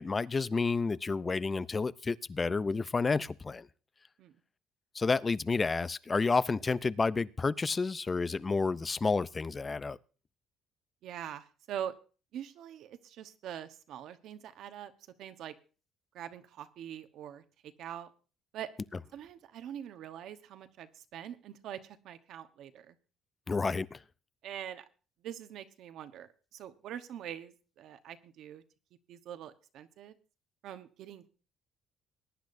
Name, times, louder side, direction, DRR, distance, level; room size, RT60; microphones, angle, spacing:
voice 1, 0.0-3.7 4.9-10.0 23.5-24.0, left 4 dB, 25° left, 0.5 m, -30 dB
voice 2, 11.0-11.9 12.3-14.9 15.2-15.5 16.1-18.1 18.5-18.7 19.1-23.0 24.4-24.8 25.2-28.6 29.1-30.2 30.6-31.2, right 10 dB, 70° right, 1.1 m, -44 dB
21.0 x 10.5 x 2.6 m
cardioid pair, 105°, 0 cm